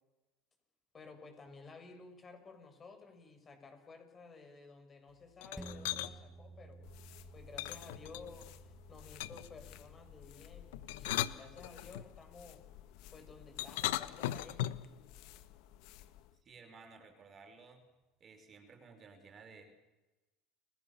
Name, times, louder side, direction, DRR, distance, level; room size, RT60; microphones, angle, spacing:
voice 1, 0.9-6.9 7.3-12.6 13.1-14.7, left 4 dB, 25° left, 6 dB, 7.1 m, -54 dB
sound 1, 5.4-6.1 7.6-8.5 9.2-9.6 10.7-12.1 13.6-14.9, left 14 dB, 85° left, 1.2 m, -37 dB
sound 2, 5.6-14.4 14.8-14.9, right 3 dB, ahead, 2.1 m, -56 dB
sound 3, 6.8-16.4, left 12 dB, 65° left, 1.9 m, -55 dB
voice 2, 16.4-17.8 18.2-19.6, right 4 dB, 35° right, 6 dB, 5.2 m, -56 dB
30.0 x 20.5 x 7.2 m, 1.0 s
supercardioid pair, 115°, 0 cm